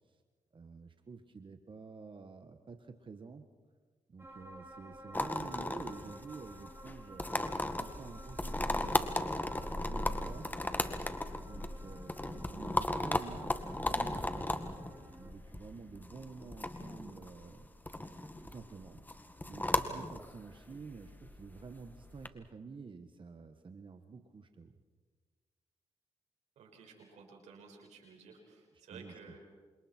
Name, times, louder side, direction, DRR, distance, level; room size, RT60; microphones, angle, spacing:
voice 1, 0.5-3.5 4.1-10.5 11.4-14.7 15.2-17.7 18.4-19.0 19.5-24.8 28.9-29.1, right 4 dB, 45° right, 7 dB, 1.5 m, -50 dB
sound 1, 4.2-15.3, right 1 dB, 20° right, 3.5 m, -55 dB
sound 2, 5.1-22.3, left 1 dB, 15° left, 2.0 m, -36 dB
voice 2, 26.6-29.4, right 5 dB, 90° right, 2 dB, 5.4 m, -54 dB
28.0 x 26.5 x 4.5 m, 1.4 s
cardioid pair, 55°, 12 cm